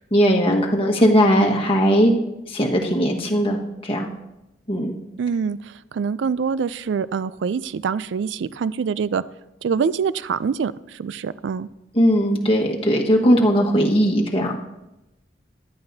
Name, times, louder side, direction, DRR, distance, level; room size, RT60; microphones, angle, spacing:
voice 1, 0.1-2.1 2.5-4.1 4.7-4.9 11.9-14.6, equal, 30° left, -1 dB, 1.5 m, -18 dB
voice 2, 5.2-9.2 9.6-11.7, right 6 dB, 80° right, 17 dB, 0.4 m, -25 dB
15.5 x 11.0 x 2.8 m, 0.92 s
head